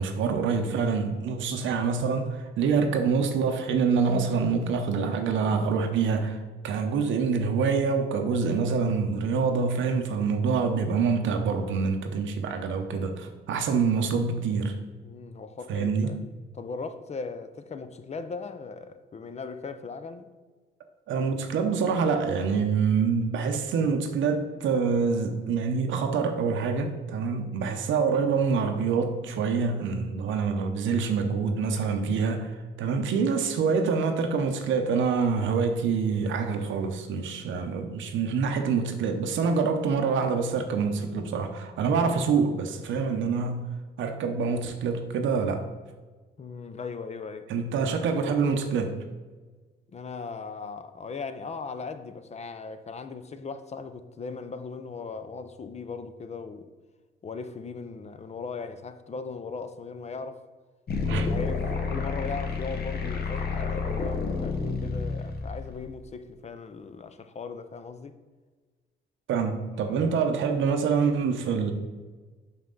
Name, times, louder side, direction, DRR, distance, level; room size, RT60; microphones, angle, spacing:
voice 1, 0.0-14.7 15.7-16.1 21.1-43.7 44.0-45.7 47.5-49.0 61.1-61.3 69.3-71.7, right 5 dB, 75° right, 0.7 m, -26 dB
voice 2, 15.0-16.2 16.5-20.3 27.5-27.7 46.4-47.5 49.9-56.7 57.2-60.4 61.0-68.2 69.8-70.1 70.5-70.6, left 4 dB, 35° left, 0.5 m, -38 dB
sound 1, 60.9-65.9, left 4 dB, 50° left, 1.0 m, -30 dB
5.9 x 5.5 x 3.9 m
cardioid pair, 90°, 20 cm